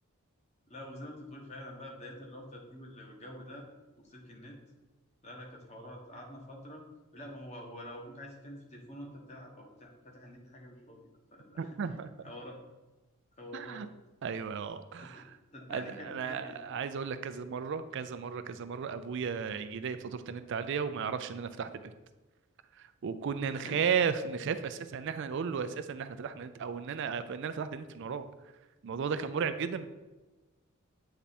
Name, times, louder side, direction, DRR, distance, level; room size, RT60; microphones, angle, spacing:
voice 1, 0.7-3.7 4.0-4.6 5.2-6.8 7.1-12.0 12.2-12.6 13.3-13.8 15.0-15.2 15.5-16.8 23.4-23.9, left 1 dB, 30° left, 0 dB, 1.2 m, -47 dB
voice 2, 11.6-12.1 13.5-13.9 14.2-15.2 15.7-21.7 22.8-28.2 28.8-29.9, right 6 dB, 55° right, 11 dB, 0.4 m, -34 dB
8.5 x 3.4 x 4.2 m, 1.2 s
head